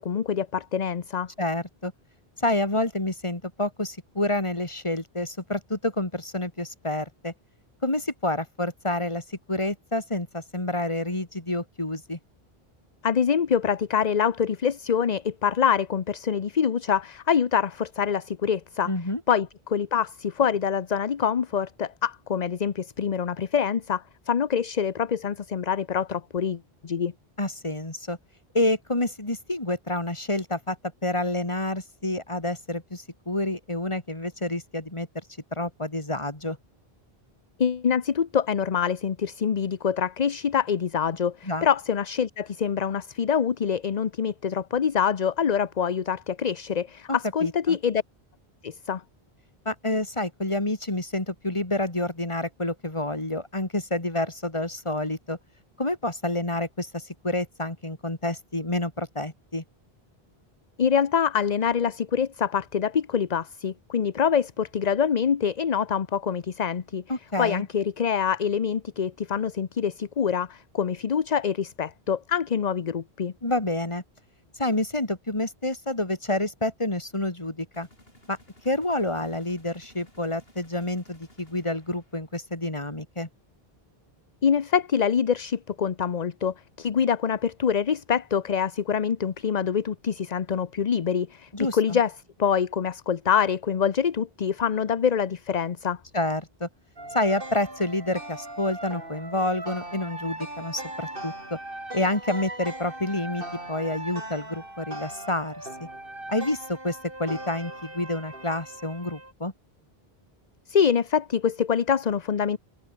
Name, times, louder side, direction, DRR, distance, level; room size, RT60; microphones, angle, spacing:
voice 1, 0.0-1.3 13.0-18.9 19.3-27.1 37.6-48.0 48.6-49.0 60.8-67.0 67.4-73.3 84.4-92.1 92.4-96.0 110.7-112.6, left 7 dB, 45° left, 0.8 m, -25 dB
voice 2, 1.4-1.9 2.4-7.3 7.8-12.2 18.9-19.2 27.4-28.2 28.5-30.8 31.0-35.1 35.5-36.6 41.4-41.7 47.1-47.8 49.6-55.4 55.8-59.6 67.1-67.7 73.4-74.0 74.5-77.9 78.3-78.4 78.6-83.3 91.5-92.0 96.1-96.7 97.1-101.6 101.9-105.9 106.3-109.5, left 1 dB, 30° left, 3.1 m, -28 dB
sound 1, 77.7-82.5, left 1 dB, 70° left, 8.2 m, -57 dB
sound 2, 97.0-109.3, right 1 dB, 60° right, 5.9 m, -39 dB
omnidirectional pair, 1.0 m